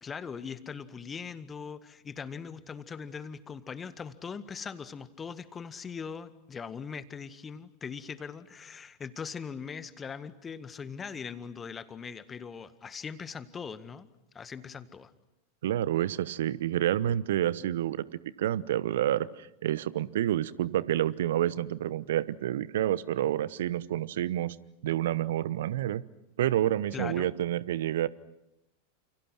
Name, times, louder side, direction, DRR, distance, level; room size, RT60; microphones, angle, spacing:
voice 1, 0.0-14.1 14.3-15.1 26.9-27.3, left 6 dB, 20° left, 12 dB, 1.7 m, -40 dB
voice 2, 15.6-18.1 18.4-24.6 24.8-26.0 26.4-28.1, right 12 dB, 60° right, 19 dB, 1.0 m, -28 dB
30.0 x 28.5 x 6.1 m, 0.88 s
figure-of-eight pair, 90°, 0 cm